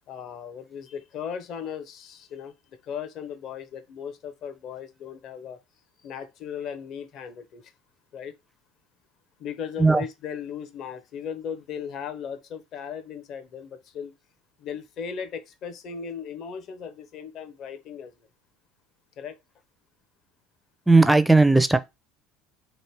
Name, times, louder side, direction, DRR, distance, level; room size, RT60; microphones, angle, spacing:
voice 1, 0.1-2.5 2.8-5.6 6.0-7.7 8.1-8.3 9.4-14.1 14.6-18.1 19.2-19.3, left 7 dB, 55° left, 0.8 m, -37 dB
voice 2, 20.9-21.8, right 3 dB, 5° right, 0.4 m, -16 dB
3.2 x 2.7 x 4.5 m
supercardioid pair, 105°, 0 cm